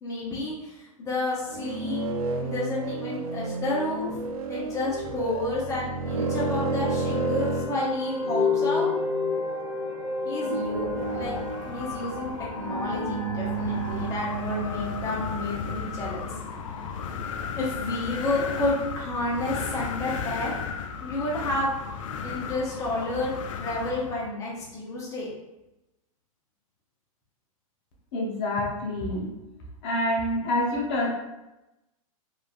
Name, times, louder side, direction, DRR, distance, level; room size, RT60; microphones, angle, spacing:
voice 1, 0.0-2.0 2.4-4.1 4.5-8.9 10.2-11.3 11.6-16.3 17.6-20.5 21.0-21.7 22.2-25.3, left 2 dB, 15° left, -5 dB, 0.7 m, -30 dB
sound 1, 1.5-7.7, right 2 dB, 75° right, 0.4 m, -31 dB
sound 2, 6.0-17.3, left 1 dB, 15° right, 0.6 m, -31 dB
Wind, 10.7-24.3, left 6 dB, 60° left, 0.4 m, -35 dB
voice 2, 28.1-29.3 29.8-31.1, left 1 dB, 45° left, -2 dB, 0.8 m, -27 dB
3.1 x 2.5 x 2.5 m, 0.97 s
hypercardioid pair, 120°, 18 cm